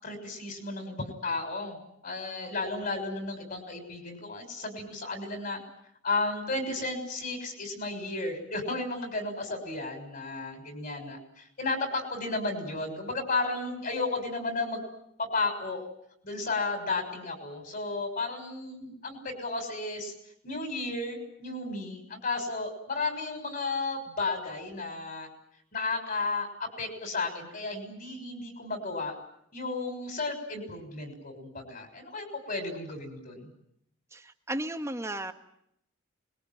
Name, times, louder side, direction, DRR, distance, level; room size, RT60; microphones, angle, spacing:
voice 1, 0.0-5.6 6.0-14.8 15.2-15.9 16.2-20.1 20.4-25.3 25.7-26.5 26.8-29.2 29.5-33.5, left 3 dB, 45° left, 6 dB, 6.5 m, -33 dB
voice 2, 34.1-35.3, right 1 dB, 15° right, 7 dB, 1.5 m, -34 dB
26.0 x 22.0 x 9.2 m, 0.74 s
head